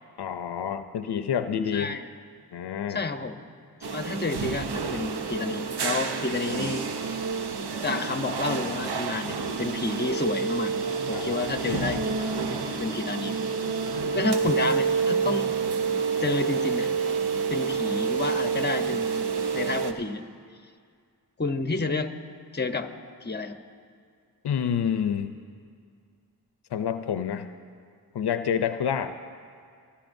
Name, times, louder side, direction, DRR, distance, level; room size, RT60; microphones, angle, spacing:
voice 1, 0.2-2.0 2.5-3.0 6.5-6.7 11.1-11.4 24.4-25.3 26.7-27.5 28.1-29.2, left 8 dB, 90° left, 10 dB, 0.5 m, -28 dB
voice 2, 1.7-2.0 2.9-3.4 3.8-7.2 7.8-10.7 11.0-12.3 12.6-13.4 14.1-15.5 16.2-16.9 17.5-19.2 19.5-20.2 21.4-22.1 22.5-22.9 23.2-23.6, left 3 dB, 25° left, 7 dB, 0.8 m, -30 dB
sound 1, 3.8-19.9, right 5 dB, 90° right, 0.8 m, -28 dB
26.0 x 13.0 x 2.6 m, 2.2 s
cardioid pair, 50°, 38 cm